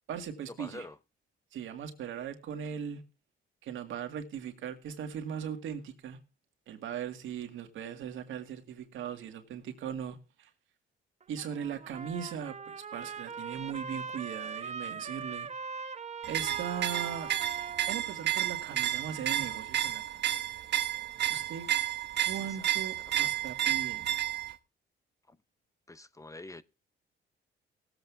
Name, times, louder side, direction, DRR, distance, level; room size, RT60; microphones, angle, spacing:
voice 1, 0.1-0.9 1.5-3.0 3.6-6.2 6.7-10.5 11.3-15.5 16.3-17.3 17.9-20.2 21.3-21.7 22.2-24.1, right 8 dB, 80° right, 2.0 m, -39 dB
voice 2, 0.6-1.0 22.3-22.7 23.1-23.3 25.3-25.4 25.9-26.6, left 2 dB, 15° left, 0.6 m, -46 dB
Trumpet, 11.2-19.6, right 5 dB, 35° right, 0.9 m, -42 dB
sound 1, 16.2-24.5, right 12 dB, 60° right, 1.0 m, -31 dB
18.5 x 8.0 x 3.5 m
cardioid pair, 90°, 20 cm